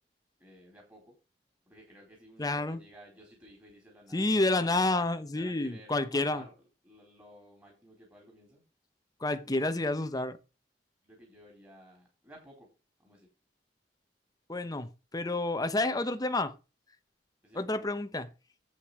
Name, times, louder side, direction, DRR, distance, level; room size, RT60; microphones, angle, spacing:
voice 1, 0.4-1.1 1.7-4.9 5.3-6.6 6.8-8.6 9.3-10.0 11.0-12.7 13.0-13.3 17.4-17.7, equal, 15° right, 3.9 m, -55 dB
voice 2, 2.4-2.8 4.1-6.4 9.2-10.4 14.5-16.6 17.5-18.3, left 2 dB, 20° left, 0.9 m, -29 dB
8.9 x 8.3 x 4.8 m
head